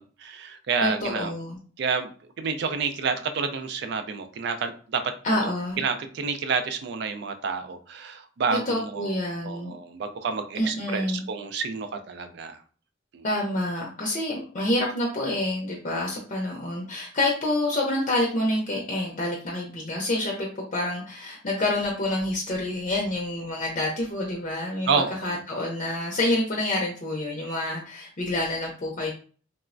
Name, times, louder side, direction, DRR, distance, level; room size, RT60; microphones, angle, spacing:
voice 1, 0.0-1.3 1.8-2.1 2.4-5.0 5.3-5.5 5.8-9.1 9.4-12.6 13.1-13.2 24.9-25.3, right 5 dB, 60° right, 8 dB, 0.4 m, -29 dB
voice 2, 0.8-1.6 5.2-5.8 8.7-9.7 10.6-11.2 13.2-24.9 25.2-29.1, left 1 dB, 40° left, -1 dB, 0.5 m, -27 dB
3.2 x 2.0 x 2.4 m, 0.41 s
head